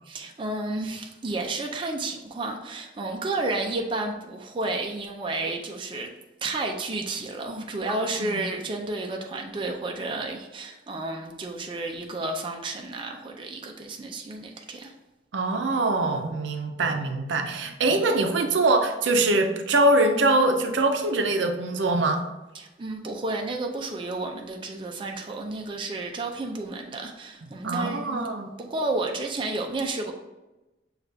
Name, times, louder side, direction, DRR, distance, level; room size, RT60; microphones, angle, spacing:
voice 1, 0.1-6.1 6.4-14.9 22.5-28.2 28.6-30.1, right 2 dB, 25° right, 2 dB, 0.4 m, -31 dB
voice 2, 15.3-22.2 27.6-28.5, right 2 dB, 85° right, 5 dB, 0.5 m, -23 dB
6.4 x 2.4 x 3.3 m, 1.0 s
head